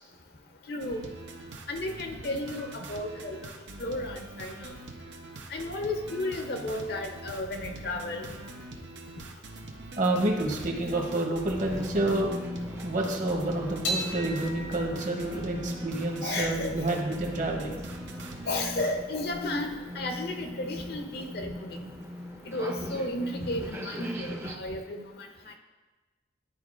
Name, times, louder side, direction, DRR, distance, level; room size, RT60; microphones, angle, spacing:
voice 1, 0.7-1.0 1.7-3.4 3.8-4.7 5.5-8.2 16.2-16.7 17.0-17.1 18.5-21.9 22.5-25.0, left 2 dB, 60° left, 4 dB, 0.7 m, -33 dB
sound 1, 0.8-18.9, right 2 dB, 90° right, 0.8 m, -43 dB
voice 2, 10.0-12.4 12.8-17.8, right 1 dB, 45° right, 2 dB, 1.0 m, -29 dB
sound 2, 11.4-24.6, equal, 15° right, 0.5 m, -39 dB
sound 3, 13.8-20.4, right 1 dB, 80° left, 1.2 m, -40 dB
11.0 x 4.5 x 2.5 m, 1.2 s
head